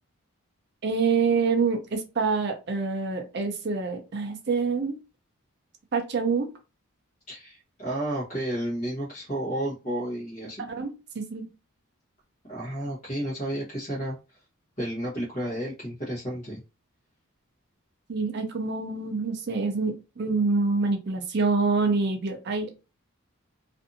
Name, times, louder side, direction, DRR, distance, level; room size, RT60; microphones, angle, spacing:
voice 1, 0.8-5.0 5.9-6.5 10.6-11.5 18.1-22.7, right 4 dB, 50° right, 5 dB, 0.4 m, -26 dB
voice 2, 7.3-10.6 12.5-14.2 14.8-16.6, right 1 dB, 35° left, -7 dB, 0.9 m, -32 dB
2.5 x 2.5 x 2.6 m, 0.30 s
head